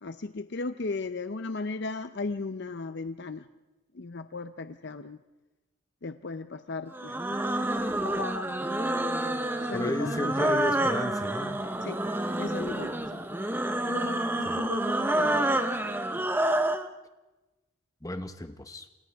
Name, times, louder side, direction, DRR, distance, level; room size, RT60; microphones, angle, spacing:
voice 1, 0.0-3.5 3.9-5.2 6.0-7.4 8.0-8.5 9.2-9.3 9.6-10.6 11.8-12.0 12.4-13.2 13.9-15.5, left 3 dB, 55° left, 10 dB, 0.6 m, -36 dB
sound 1, 6.9-16.9, right 1 dB, 10° right, 0.9 m, -28 dB
voice 2, 9.7-11.5 14.5-14.6 18.0-18.9, left 1 dB, 15° left, 8 dB, 1.1 m, -33 dB
28.0 x 27.0 x 3.5 m, 1.1 s
head